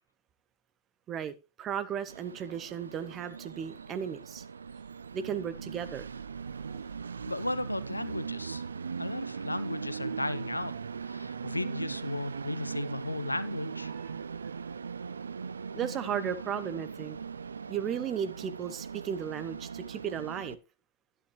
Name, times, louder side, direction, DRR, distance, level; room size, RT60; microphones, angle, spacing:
voice 1, 1.1-4.4 5.1-6.1 6.7-6.8 13.9-14.2 15.7-17.2 17.7-20.6, right 8 dB, 30° right, 1.0 m, -35 dB
Train, 2.1-20.5, right 6 dB, 75° right, 0.4 m, -40 dB
voice 2, 7.3-8.6 9.0-13.9, left 2 dB, 90° left, 0.6 m, -35 dB
11.5 x 8.8 x 3.2 m
figure-of-eight pair, 95°, 0 cm